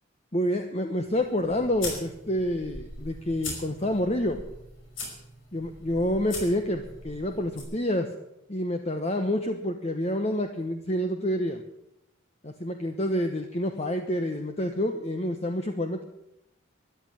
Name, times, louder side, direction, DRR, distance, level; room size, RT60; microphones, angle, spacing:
voice 1, 0.3-4.4 5.5-8.1 8.5-11.6 12.4-16.0, left 1 dB, 35° left, 5 dB, 1.1 m, -28 dB
sound 1, 1.0-7.6, left 2 dB, 80° left, 5.4 m, -41 dB
14.0 x 11.0 x 9.0 m, 0.84 s
head